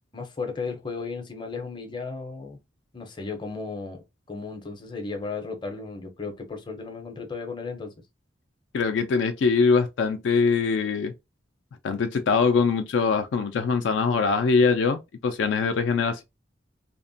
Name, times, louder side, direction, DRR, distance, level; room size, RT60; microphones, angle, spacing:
voice 1, 0.1-2.6 2.9-7.9, left 4 dB, 25° left, 0.6 m, -35 dB
voice 2, 8.7-11.1 11.8-16.2, left 5 dB, 70° left, 0.3 m, -23 dB
2.8 x 2.1 x 2.6 m
head